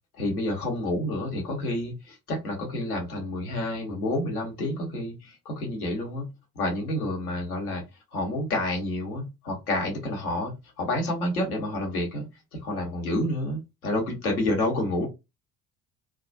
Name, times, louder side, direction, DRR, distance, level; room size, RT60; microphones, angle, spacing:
voice 1, 0.1-6.3 6.5-7.8 8.1-15.1, left 1 dB, 80° left, 1.1 m, -29 dB
2.2 x 2.2 x 2.5 m
figure-of-eight pair, 50°, 43 cm